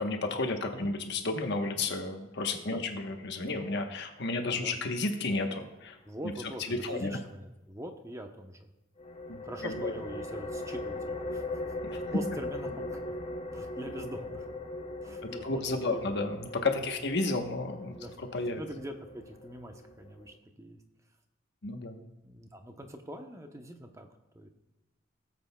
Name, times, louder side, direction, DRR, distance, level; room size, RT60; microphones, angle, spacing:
voice 1, 0.0-6.0 6.7-7.2 9.3-9.9 11.8-12.0 15.4-18.6 21.6-22.0, left 3 dB, 60° left, 4 dB, 1.1 m, -32 dB
voice 2, 6.1-8.7 9.4-11.4 11.9-13.1 13.5-14.5 15.0-16.0 16.7-17.0 17.9-19.0 19.2-20.8 22.2-24.1 24.3-24.5, equal, 15° right, 5 dB, 0.8 m, -43 dB
sound 1, 9.0-20.4, left 2 dB, 30° left, 0.6 m, -40 dB
17.5 x 7.8 x 2.3 m, 1.0 s
head